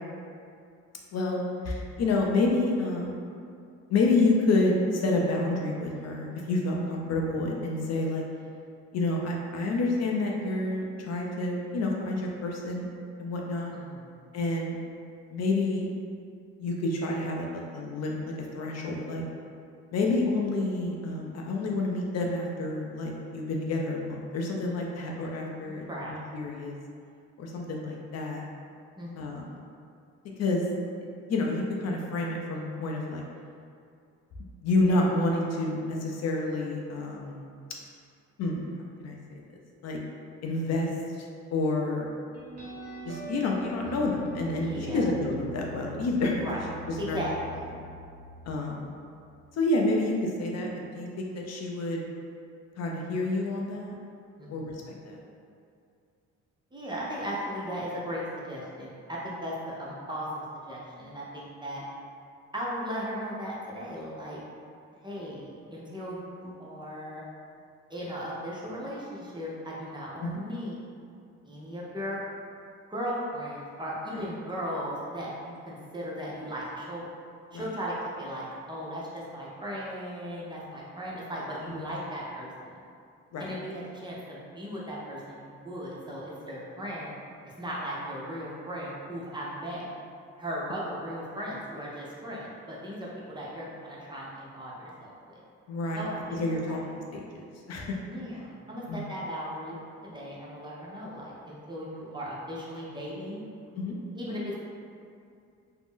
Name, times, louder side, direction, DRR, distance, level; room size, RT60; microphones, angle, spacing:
voice 1, 1.6-3.2 3.9-8.2 8.9-12.9 13.2-13.7 14.3-14.8 15.3-15.9 16.6-18.2 18.5-19.2 19.9-26.7 27.4-28.4 29.2-29.4 30.4-30.6 31.0-33.2 34.6-37.4 38.4-38.7 39.0-39.2 39.8-40.0 40.4-40.9 41.2-41.3 41.5-42.1 43.0-46.4 47.1-47.2 48.5-48.9 49.5-52.0 52.8-53.9 54.5-55.2 70.2-70.4 77.5-77.7 83.3-83.5 95.7-96.1 96.3-98.0 98.9-99.0 103.8-104.0, left 2 dB, 60° left, -1 dB, 0.5 m, -29 dB
voice 2, 13.7-14.1 25.7-26.2 29.0-29.5 44.6-45.1 46.4-46.6 47.0-47.3 54.4-54.8 56.7-61.8 62.5-64.4 65.0-67.2 67.9-70.8 71.4-72.2 72.9-77.1 77.5-82.8 83.4-87.1 87.4-89.9 90.4-95.4 96.0-96.8 98.1-103.4 104.2-104.5, equal, 15° right, -6 dB, 0.6 m, -37 dB
sound 1, 42.3-49.5, equal, 55° right, 0.9 m, -43 dB
2.5 x 2.0 x 3.6 m, 2.4 s
cardioid pair, 90°, 30 cm